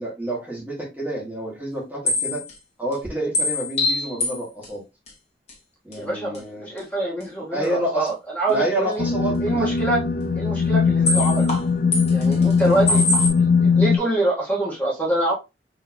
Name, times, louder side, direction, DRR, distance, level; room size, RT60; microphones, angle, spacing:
voice 1, 0.0-2.4 2.8-4.8 5.8-6.7 7.5-8.1 8.5-9.7 12.9-13.0, right 1 dB, 10° right, -4 dB, 1.4 m, -28 dB
sound 1, 2.1-2.5 2.9-3.0 3.3-4.4 4.6-4.7 5.1-5.2 5.5-5.6 5.9-6.0 6.3-6.4 6.8-6.9 11.1-11.6 11.9-12.6 12.9-13.3, left 2 dB, 40° left, 1.4 m, -23 dB
voice 2, 5.9-9.0 9.4-10.0 10.3-11.5 12.1-13.0 13.6-15.3, right 2 dB, 10° left, -5 dB, 1.3 m, -25 dB
sound 2, 9.0-14.0, left 5 dB, 55° left, 0.6 m, -20 dB
4.1 x 2.9 x 2.8 m, 0.25 s
head